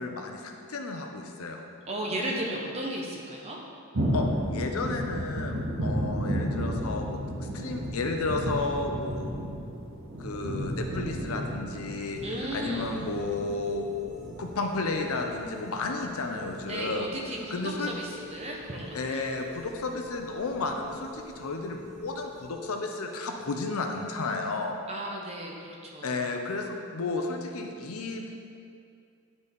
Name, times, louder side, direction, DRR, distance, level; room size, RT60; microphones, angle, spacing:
voice 1, 0.0-1.6 4.1-4.3 4.5-9.4 10.2-12.2 12.5-13.9 14.4-17.1 17.5-17.9 18.9-24.7 26.0-28.4, left 3 dB, 80° left, 3 dB, 0.7 m, -32 dB
voice 2, 1.9-3.6 12.2-12.9 16.7-19.2 24.9-26.2, right 1 dB, 30° right, -2 dB, 0.8 m, -35 dB
sound 1, 3.9-18.2 18.5-19.0 19.5-20.1 20.5-21.0 21.4-21.5 22.0-22.1, equal, 65° right, 0.8 m, -34 dB
sound 2, 12.1-24.5, left 1 dB, ahead, 0.5 m, -48 dB
9.8 x 4.1 x 3.5 m, 2.4 s
head